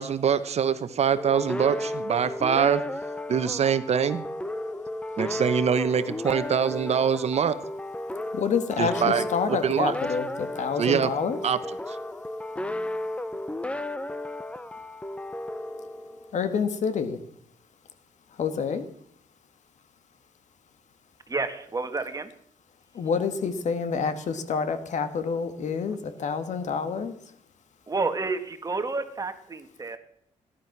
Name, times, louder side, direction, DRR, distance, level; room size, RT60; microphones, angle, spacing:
voice 1, 0.0-2.8 3.3-4.2 5.2-7.5 8.8-9.2 9.6-9.9 10.8-11.1 11.4-11.6 11.9-12.0, right 7 dB, 55° right, 12 dB, 1.1 m, -24 dB
sound 1, 1.2-16.5, left 1 dB, 10° left, 0.8 m, -34 dB
voice 2, 8.3-11.4 15.7-15.9 16.3-17.2 18.3-18.9 22.9-27.3, left 5 dB, 65° left, 11 dB, 1.7 m, -28 dB
voice 3, 21.3-22.3 27.9-30.0, right 3 dB, 25° right, 8 dB, 1.8 m, -30 dB
17.0 x 11.5 x 6.0 m, 0.69 s
cardioid pair, 90°, 13 cm